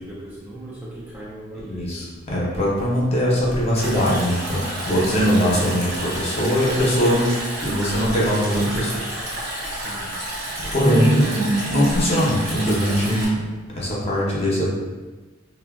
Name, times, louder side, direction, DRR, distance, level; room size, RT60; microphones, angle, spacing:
voice 1, 0.0-2.0 9.7-10.2 10.8-11.2, right 1 dB, 10° right, -7 dB, 0.3 m, -28 dB
voice 2, 1.7-7.2 7.6-8.9 10.6-13.4 13.8-14.7, equal, 30° left, -5 dB, 0.6 m, -21 dB
Stream, 3.8-13.3, right 1 dB, 60° right, 0.8 m, -31 dB
3.2 x 2.2 x 2.2 m, 1.3 s
head